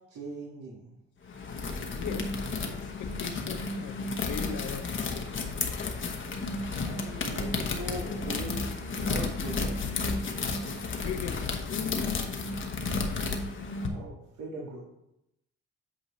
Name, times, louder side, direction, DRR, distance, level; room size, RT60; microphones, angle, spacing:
voice 1, 0.1-0.9 6.8-8.8 9.1-9.9 13.8-14.8, right 2 dB, 75° right, -5 dB, 1.6 m, -40 dB
sound 1, 1.3-13.9, left 3 dB, 40° left, 1.0 m, -32 dB
voice 2, 2.0-2.3 2.7-5.3 11.0-12.3, left 8 dB, 70° left, 8 dB, 0.7 m, -39 dB
8.5 x 5.6 x 3.2 m, 0.84 s
cardioid pair, 90°, 30 cm